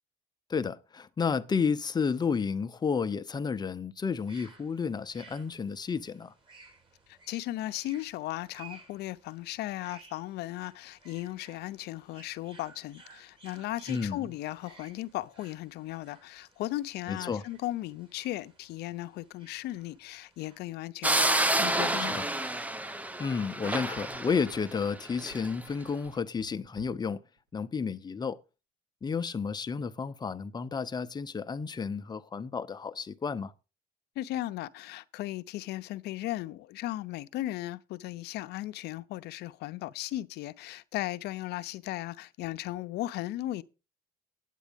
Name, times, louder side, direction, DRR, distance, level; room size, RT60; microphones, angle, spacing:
voice 1, 0.5-6.3 13.9-14.2 17.1-17.4 22.0-22.3 23.2-27.2 27.5-28.4 29.0-33.5, left 5 dB, 25° left, 0.7 m, -31 dB
sound 1, 4.0-20.7, right 4 dB, 30° right, 3.8 m, -57 dB
voice 2, 7.1-22.2 34.2-43.6, left 15 dB, 80° left, 0.6 m, -36 dB
sound 2, 21.0-25.5, right 1 dB, 10° right, 0.6 m, -29 dB
sound 3, 24.1-27.1 27.4-27.5, right 1 dB, 90° right, 2.3 m, -52 dB
9.2 x 8.3 x 5.2 m
cardioid pair, 110°, 17 cm